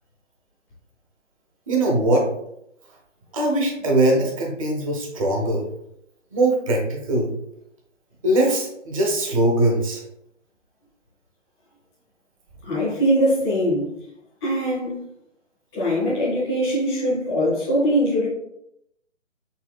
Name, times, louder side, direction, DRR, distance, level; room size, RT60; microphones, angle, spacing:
voice 1, 1.7-2.3 3.3-5.6 6.3-7.3 8.2-10.0, right 1 dB, 25° right, 0 dB, 0.8 m, -21 dB
voice 2, 12.6-13.9 14.4-15.0 15.7-18.3, equal, ahead, -9 dB, 0.5 m, -22 dB
5.5 x 3.6 x 2.4 m, 0.79 s
hypercardioid pair, 155°, 38 cm